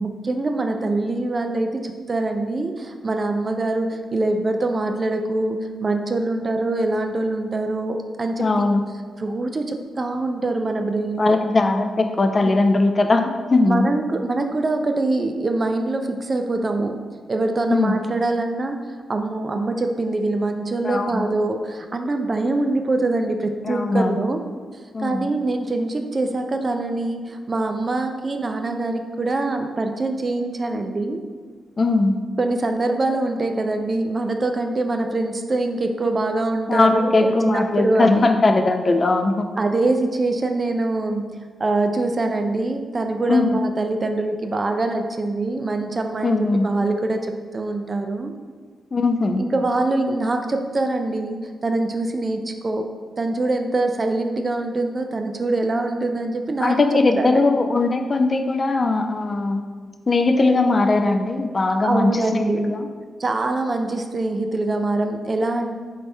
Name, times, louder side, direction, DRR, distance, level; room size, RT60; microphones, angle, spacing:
voice 1, 0.0-8.6 9.2-11.4 12.4-12.5 13.6-17.0 17.3-18.8 19.1-24.5 25.0-31.2 32.4-38.3 39.6-46.4 46.6-48.3 49.4-52.8 53.2-56.7 57.2-57.4 61.8-62.7 63.2-65.8, right 2 dB, 45° right, 5 dB, 0.3 m, -24 dB
voice 2, 8.4-8.8 11.2-13.9 17.7-18.0 20.8-21.3 23.6-24.2 24.9-25.3 31.8-32.2 36.7-39.5 43.3-43.6 46.2-46.7 48.9-49.4 56.6-59.6 60.1-62.9, left 3 dB, 40° left, 5 dB, 0.3 m, -19 dB
3.3 x 3.1 x 2.7 m, 1.5 s
supercardioid pair, 50°, 0 cm